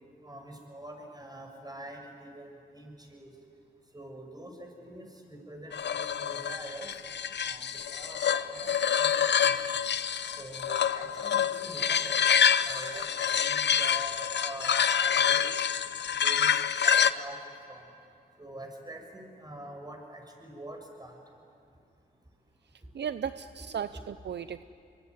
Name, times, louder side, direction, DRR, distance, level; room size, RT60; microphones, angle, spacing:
voice 1, 0.2-3.3 3.9-6.9 7.4-8.7 9.0-9.8 10.4-12.2 12.6-15.6 16.2-16.5 16.8-17.4 17.7-17.8 18.4-21.2, right 1 dB, 20° right, 2 dB, 7.0 m, -45 dB
sound 1, 5.7-17.1, left 8 dB, 70° left, 0.8 m, -27 dB
voice 2, 22.9-24.6, right 8 dB, 65° right, 12 dB, 0.6 m, -35 dB
24.5 x 23.0 x 9.8 m, 2.5 s
cardioid pair, 50°, 19 cm